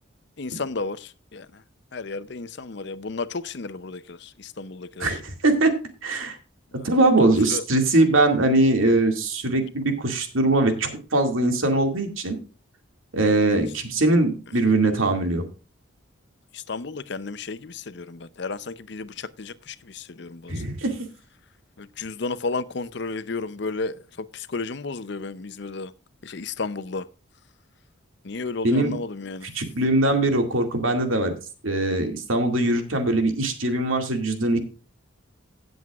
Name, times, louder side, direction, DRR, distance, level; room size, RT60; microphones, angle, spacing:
voice 1, 0.4-1.6 1.9-5.2 6.8-7.6 16.5-20.6 21.8-25.9 26.2-27.1 28.2-29.5, left 3 dB, 55° left, 0.6 m, -33 dB
voice 2, 5.0-5.8 6.0-6.4 6.8-12.4 13.1-15.4 20.5-21.0 28.6-28.9 29.5-31.4 31.6-34.6, right 2 dB, 80° right, 2.2 m, -21 dB
17.0 x 7.9 x 2.4 m
head